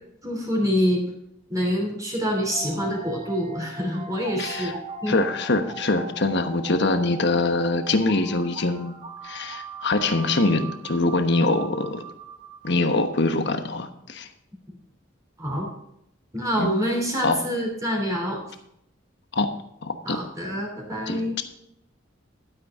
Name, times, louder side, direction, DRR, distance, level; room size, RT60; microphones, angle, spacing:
voice 1, 0.2-1.0 1.5-5.2 15.4-15.7 16.3-18.4 20.0-21.4, equal, 20° right, -1 dB, 3.0 m, -26 dB
sound 1, 2.3-13.3, right 3 dB, 35° right, 1.6 m, -40 dB
voice 2, 4.4-4.7 5.1-8.9 9.2-12.0 12.6-14.3 16.6-16.7 17.2-17.4 19.3-19.5 19.8-20.2 21.1-21.4, left 2 dB, 60° left, 8 dB, 1.2 m, -24 dB
12.0 x 9.9 x 3.7 m, 0.80 s
head